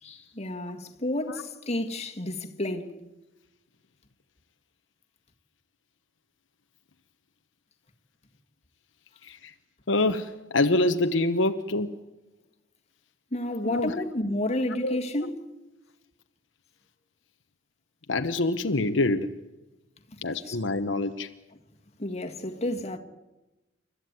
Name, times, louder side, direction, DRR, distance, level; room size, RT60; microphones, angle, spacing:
voice 1, 0.0-3.0 13.3-15.4 20.1-20.6 22.0-23.0, left 1 dB, 35° left, 1.8 m, -31 dB
voice 2, 9.9-11.9 13.6-13.9 14.8-15.0 18.1-19.3 20.2-21.3, left 2 dB, 70° left, 1.0 m, -25 dB
29.5 x 13.5 x 9.6 m
head